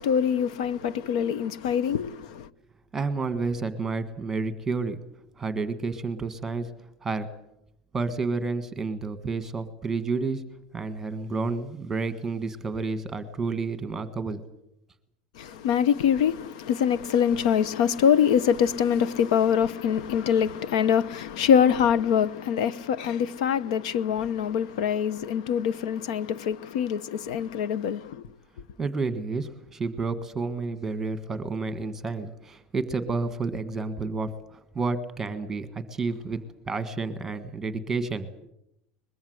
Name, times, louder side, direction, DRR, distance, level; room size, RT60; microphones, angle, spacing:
voice 1, 0.0-2.5 15.4-28.2, left 8 dB, 70° left, 0.9 m, -24 dB
voice 2, 2.9-5.0 5.4-6.7 7.0-7.3 7.9-10.4 10.7-14.4 28.8-36.4 36.6-38.3, right 4 dB, 10° right, 1.4 m, -30 dB
23.0 x 21.0 x 7.9 m
supercardioid pair, 170°, 4 cm